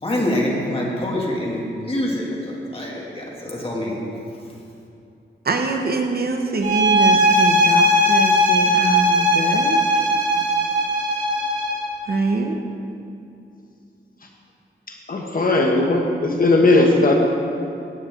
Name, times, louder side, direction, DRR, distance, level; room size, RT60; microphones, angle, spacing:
voice 1, 0.0-4.0, left 1 dB, 30° left, -3 dB, 2.6 m, -25 dB
voice 2, 5.4-9.8 12.0-12.6, right 3 dB, 55° right, 3 dB, 1.1 m, -24 dB
sound 1, 6.6-11.9, equal, 85° right, 2.6 m, -18 dB
voice 3, 15.1-17.2, left 2 dB, 45° left, 1 dB, 1.2 m, -17 dB
17.0 x 8.8 x 3.9 m, 2.6 s
wide cardioid pair, 95°, 19 cm